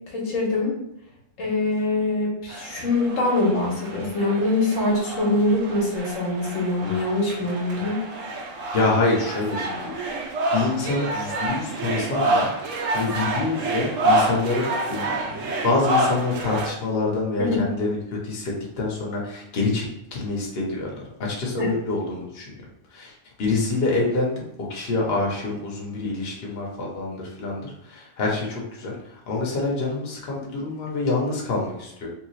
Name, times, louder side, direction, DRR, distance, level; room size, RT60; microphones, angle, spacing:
voice 1, 0.1-0.8 1.4-8.0 17.4-17.7 21.6-21.7, left 2 dB, 85° left, -2 dB, 1.4 m, -23 dB
sound 1, 2.5-16.7, right 2 dB, 85° right, 1.0 m, -28 dB
voice 2, 8.7-9.9 10.5-15.4 15.6-20.9 21.2-22.5 22.9-32.1, left 3 dB, 55° left, -2 dB, 1.1 m, -26 dB
3.2 x 2.8 x 3.1 m, 0.79 s
omnidirectional pair, 1.3 m